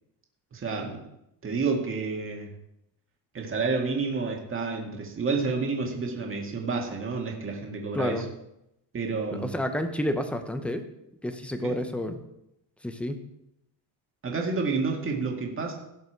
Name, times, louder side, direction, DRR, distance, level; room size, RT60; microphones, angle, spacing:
voice 1, 0.5-1.0 1.4-2.5 3.3-8.2 8.9-9.6 11.6-11.8 14.2-15.7, right 4 dB, 25° right, 1 dB, 1.9 m, -29 dB
voice 2, 7.9-8.3 9.4-10.8 11.2-12.2 12.8-13.2, left 1 dB, 5° left, 7 dB, 0.7 m, -29 dB
16.5 x 5.5 x 4.6 m, 0.84 s
cardioid pair, 150°, 46 cm